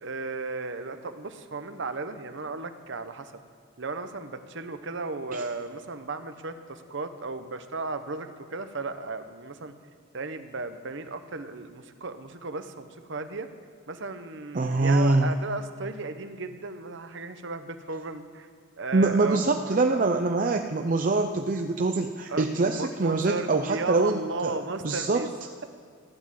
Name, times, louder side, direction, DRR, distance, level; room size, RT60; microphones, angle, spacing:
voice 1, 0.0-3.3 3.8-9.8 10.1-13.5 13.9-18.5 18.8-19.8 22.3-22.5 22.7-25.3, right 3 dB, 60° right, 9 dB, 0.9 m, -35 dB
voice 2, 14.5-15.3 18.9-24.6 24.8-25.3, right 3 dB, 40° right, 5 dB, 0.5 m, -24 dB
15.0 x 9.8 x 7.6 m, 2.2 s
head